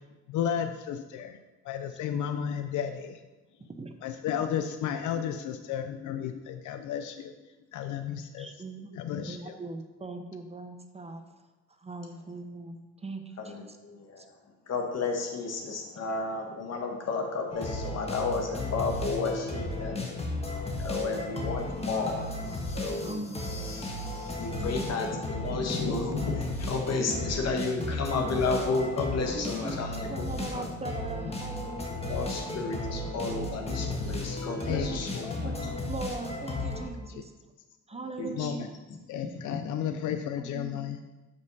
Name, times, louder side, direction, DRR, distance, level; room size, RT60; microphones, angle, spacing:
voice 1, 0.3-1.4 1.6-3.2 4.0-7.3 7.7-8.5 8.9-9.6 34.6-35.4 37.1-37.2 38.4-38.7 39.1-41.0, left 9 dB, 75° left, 8 dB, 0.5 m, -33 dB
voice 2, 8.4-8.9 9.2-11.2 11.8-13.8 14.2-14.3 20.9-21.1 23.0-23.7 24.5-25.3 27.0-27.4 28.1-28.4 29.3-29.8 30.1-32.6 32.9-33.1 34.7-35.0 35.4-37.3 37.9-38.7 39.8-40.0 40.4-40.9, right 3 dB, 20° right, 7 dB, 0.6 m, -40 dB
voice 3, 13.4-14.2 14.7-20.0 20.8-22.3 22.7-23.2 24.4-30.7 32.1-35.7 37.9-38.6 39.2-39.6, left 3 dB, 55° left, 2 dB, 1.3 m, -32 dB
sound 1, 17.5-36.9, left 2 dB, 20° left, 1.3 m, -34 dB
6.9 x 5.3 x 4.0 m, 1.1 s
cardioid pair, 90°, 30 cm